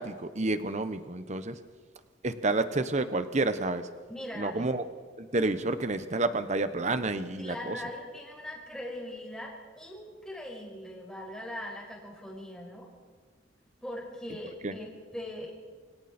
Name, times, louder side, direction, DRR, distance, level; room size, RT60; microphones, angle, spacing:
voice 1, 0.0-1.6 2.2-3.9 4.3-4.8 5.2-7.8 14.6-14.7, right 2 dB, 40° right, 11 dB, 1.1 m, -29 dB
voice 2, 4.1-4.7 7.4-12.9 13.8-15.5, left 1 dB, 5° left, -3 dB, 5.7 m, -41 dB
27.5 x 25.0 x 4.4 m, 1.5 s
head